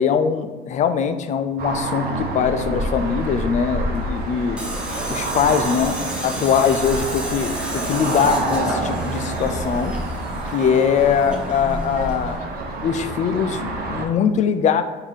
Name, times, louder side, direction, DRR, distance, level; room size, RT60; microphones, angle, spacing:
voice 1, 0.0-4.6 5.1-7.6 7.8-9.9 10.5-12.4 12.8-14.8, left 7 dB, 45° left, 9 dB, 0.4 m, -21 dB
sound 1, 1.6-14.0, right 2 dB, 65° right, 0.9 m, -27 dB
Tools, 4.6-12.4, equal, 5° right, 0.8 m, -34 dB
4.6 x 2.7 x 3.9 m, 1.3 s
cardioid pair, 110°, 17 cm